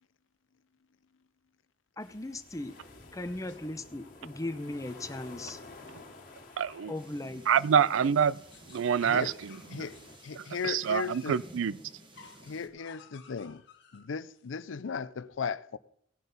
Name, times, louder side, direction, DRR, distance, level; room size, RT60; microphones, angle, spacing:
sound 1, 2.0-10.2, left 2 dB, 45° left, 2.0 m, -52 dB
voice 1, 2.0-2.8 3.1-5.6 6.9-7.4, left 2 dB, 15° left, 0.7 m, -38 dB
sound 2, 2.3-3.8 4.7-6.1 6.7-7.8 8.1-11.5 12.1-14.5, left 5 dB, 60° left, 1.5 m, -56 dB
voice 2, 6.6-6.9 7.5-8.4 8.7-9.8 10.4-11.8, right 7 dB, 80° right, 0.4 m, -27 dB
sound 3, 6.9-12.7, right 1 dB, 25° right, 1.3 m, -53 dB
voice 3, 9.0-9.3 9.7-11.4 12.4-13.6 13.9-15.8, left 6 dB, 80° left, 0.5 m, -37 dB
17.5 x 6.1 x 5.3 m
head